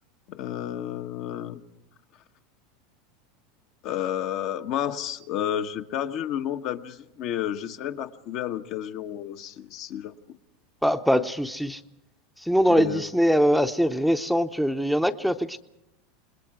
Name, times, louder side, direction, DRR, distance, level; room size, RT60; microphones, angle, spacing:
voice 1, 0.3-1.6 3.8-10.1 12.7-13.1, left 10 dB, 55° left, 6 dB, 1.2 m, -31 dB
voice 2, 10.8-11.8 12.4-15.6, equal, ahead, 9 dB, 0.7 m, -22 dB
27.5 x 20.5 x 4.8 m, 0.87 s
supercardioid pair, 110°, 0 cm